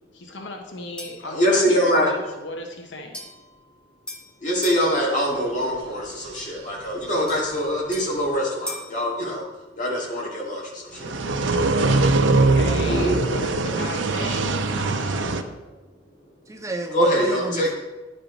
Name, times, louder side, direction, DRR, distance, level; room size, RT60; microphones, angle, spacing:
voice 1, 0.1-3.2 12.4-15.4, left 2 dB, 70° left, 3 dB, 0.8 m, -35 dB
sound 1, 1.0-1.3 3.1-4.9 7.3-9.0, left 1 dB, 5° left, 0.9 m, -39 dB
voice 2, 1.2-2.1 4.4-9.4 9.8-11.1 12.8-13.2 16.9-17.7, equal, 40° left, -3 dB, 2.0 m, -23 dB
sound 2, 11.0-15.4, right 3 dB, 80° right, 0.6 m, -21 dB
voice 3, 11.8-12.3 16.5-17.7, right 2 dB, 15° right, 5 dB, 0.4 m, -32 dB
10.5 x 4.3 x 3.9 m, 1.1 s
head